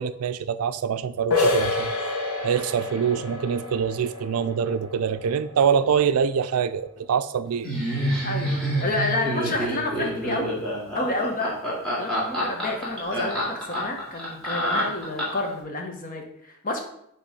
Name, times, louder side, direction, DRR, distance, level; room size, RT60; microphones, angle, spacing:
voice 1, 0.0-1.9 2.4-7.7, right 7 dB, 85° right, 13 dB, 0.4 m, -24 dB
sound 1, 1.3-6.8, left 2 dB, 85° left, 1.1 m, -29 dB
Laughter, 7.6-15.5, equal, 5° left, 2.3 m, -27 dB
voice 2, 8.2-10.5 10.9-11.5 12.0-16.8, left 2 dB, 40° left, 2 dB, 1.0 m, -29 dB
8.2 x 3.1 x 5.0 m, 0.76 s
head